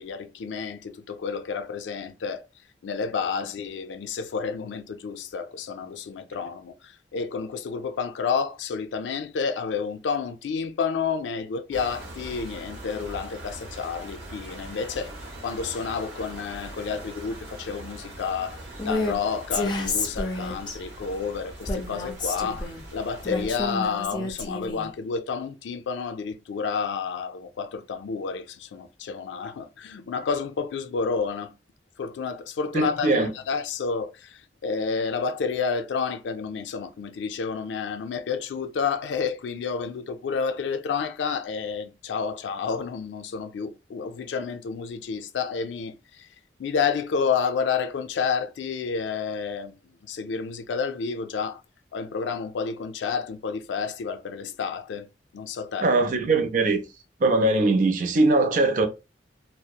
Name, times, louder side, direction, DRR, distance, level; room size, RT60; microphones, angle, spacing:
voice 1, 0.0-2.4 2.8-15.1 15.4-31.5 32.0-46.3 46.6-49.7 50.0-51.6 51.9-55.1 55.3-55.9, left 5 dB, 85° left, 0.3 m, -30 dB
sound 1, 11.7-23.5, right 1 dB, 75° right, 0.9 m, -42 dB
Female speech woman speaking, 18.8-19.2 19.5-20.8 21.7-22.8 23.3-24.9, left 2 dB, 25° left, 0.5 m, -29 dB
voice 2, 32.7-33.3 55.8-56.8 57.2-58.9, right 2 dB, 45° right, 0.4 m, -21 dB
2.7 x 2.0 x 2.2 m
head